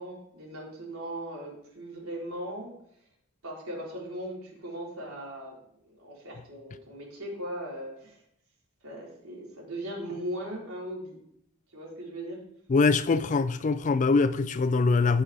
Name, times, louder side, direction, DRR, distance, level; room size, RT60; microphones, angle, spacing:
voice 1, 0.0-2.7 3.4-5.6 6.0-8.2 8.8-11.2 11.7-12.4, right 1 dB, 80° right, 3.7 m, -38 dB
voice 2, 12.7-15.2, left 4 dB, 35° left, 0.4 m, -23 dB
15.0 x 5.5 x 3.4 m
head